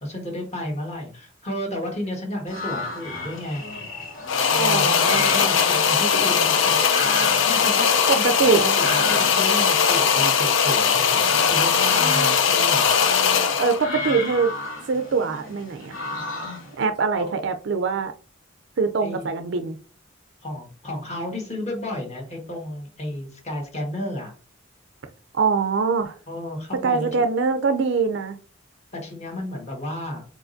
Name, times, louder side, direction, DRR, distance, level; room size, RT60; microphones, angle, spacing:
voice 1, 0.0-3.6 4.5-6.8 7.2-12.9 17.1-17.4 19.0-19.3 20.4-24.3 26.3-27.1 29.0-30.2, left 1 dB, 35° left, 1.4 m, -32 dB
sound 1, 2.5-16.8, left 2 dB, 90° left, 2.5 m, -33 dB
sound 2, 4.3-13.8, left 6 dB, 70° left, 0.6 m, -20 dB
voice 2, 4.6-5.2 8.1-8.7 13.6-14.5 14.9-15.9 16.8-18.1 18.8-19.8 25.3-26.2 26.8-28.4, right 5 dB, 60° right, 0.4 m, -23 dB
4.8 x 4.1 x 2.6 m
head